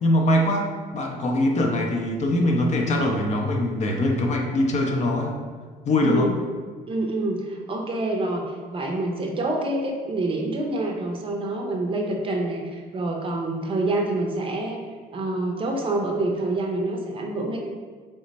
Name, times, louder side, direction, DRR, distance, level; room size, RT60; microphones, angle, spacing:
voice 1, 0.0-5.3 5.9-6.3, left 1 dB, 45° left, 2 dB, 0.5 m, -22 dB
voice 2, 6.0-6.4 6.9-14.8 15.1-17.6, right 2 dB, 30° right, 1 dB, 0.5 m, -27 dB
3.3 x 2.0 x 3.9 m, 1.5 s
cardioid pair, 110°, 17 cm